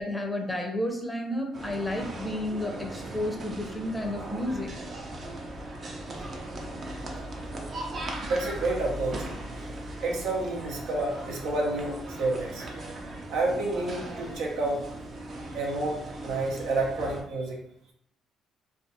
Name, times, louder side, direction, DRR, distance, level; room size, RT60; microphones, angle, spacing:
voice 1, 0.0-4.8 15.4-15.5, left 1 dB, 10° left, 1 dB, 0.5 m, -32 dB
sound 1, 1.5-17.2, right 1 dB, 45° right, 0.5 m, -38 dB
voice 2, 8.2-9.2 9.6-9.7 10.0-12.8 13.3-14.8 15.5-17.6, right 2 dB, 85° right, -1 dB, 0.7 m, -29 dB
2.5 x 2.3 x 2.7 m, 0.74 s
cardioid pair, 95°, 0 cm